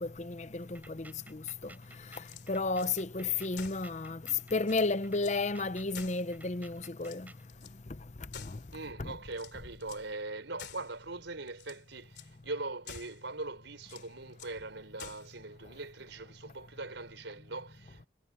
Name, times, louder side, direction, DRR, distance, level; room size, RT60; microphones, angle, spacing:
voice 1, 0.0-1.4 2.5-4.2 4.5-7.3 8.5-8.6 9.0-9.1, left 3 dB, 40° left, 0.7 m, -32 dB
sound 1, 0.6-7.5, right 2 dB, 10° right, 7.9 m, -55 dB
sound 2, 2.1-2.9 3.5-3.9 4.3-4.4 4.6-5.4 5.9-6.6 7.0-7.8 8.3-8.9 9.3-10.1 10.6-11.0 11.5-11.8 12.1-12.3 12.8-13.3 13.8-14.6 15.0-15.4, left 7 dB, 65° left, 3.1 m, -49 dB
voice 2, 8.7-18.1, right 2 dB, 85° right, 4.7 m, -41 dB
head